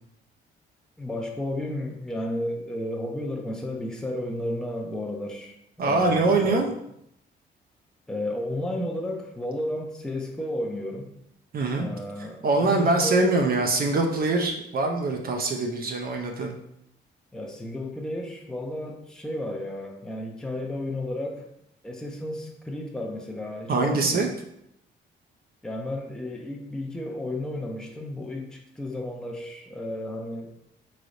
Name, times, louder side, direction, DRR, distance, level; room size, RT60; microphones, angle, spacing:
voice 1, 1.0-5.6 5.8-6.7 8.1-11.1 11.7-13.3 17.3-21.5 21.8-24.3 25.6-30.5, left 1 dB, 5° left, 1 dB, 0.5 m, -33 dB
voice 2, 5.8-6.7 11.5-11.9 12.2-16.6 23.7-24.3, right 3 dB, 50° right, 3 dB, 0.5 m, -23 dB
3.8 x 3.2 x 2.5 m, 0.76 s
cardioid pair, 90°, 20 cm